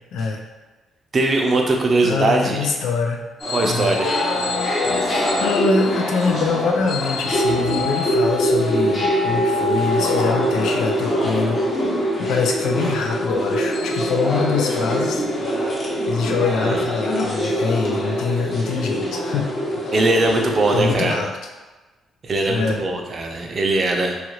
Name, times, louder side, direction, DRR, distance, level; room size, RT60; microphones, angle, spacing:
voice 1, 0.1-0.4 2.0-3.2 3.6-4.0 4.9-11.6 12.2-15.2 16.1-19.5 19.8-19.9 20.7-21.3 22.5-22.8, left 5 dB, 80° left, 2 dB, 0.4 m, -24 dB
voice 2, 1.1-2.6 3.5-4.2 16.6-16.8 19.9-21.2 22.2-24.2, right 2 dB, 45° right, 2 dB, 0.5 m, -20 dB
sound 1, 3.4-21.0, equal, 45° left, 0.8 m, -23 dB
2.9 x 2.4 x 3.0 m, 1.2 s
cardioid pair, 90°, 0 cm